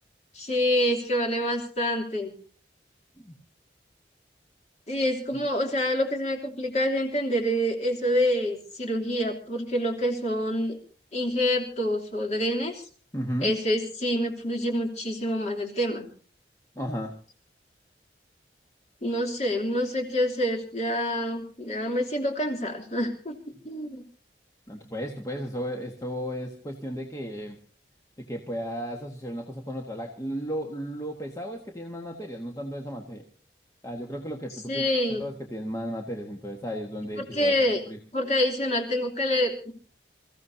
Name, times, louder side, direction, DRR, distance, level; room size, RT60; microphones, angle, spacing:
voice 1, 0.3-2.3 4.9-10.8 11.1-12.8 13.4-16.1 19.0-23.4 23.6-24.0 34.7-35.3 37.2-37.8 38.1-39.7, equal, 40° left, 3 dB, 3.0 m, -27 dB
voice 2, 13.1-13.5 16.7-17.1 24.7-27.6 28.2-33.2 33.8-34.9 35.2-37.5 37.9-38.0, equal, 20° left, 1 dB, 1.5 m, -34 dB
27.0 x 15.5 x 2.8 m, 0.40 s
head